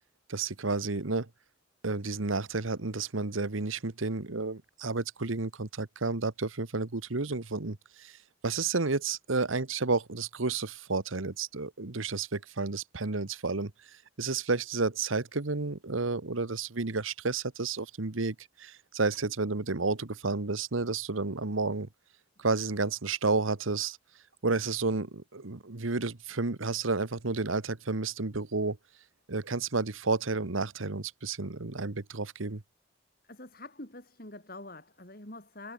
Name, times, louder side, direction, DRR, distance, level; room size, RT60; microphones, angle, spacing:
voice 1, 0.3-1.3 1.8-8.2 8.4-13.7 14.2-21.9 22.4-24.0 24.4-28.8 29.3-32.6, right 3 dB, 85° right, 1.3 m, -31 dB
voice 2, 33.2-35.7, left 2 dB, 45° left, 4.8 m, -45 dB
head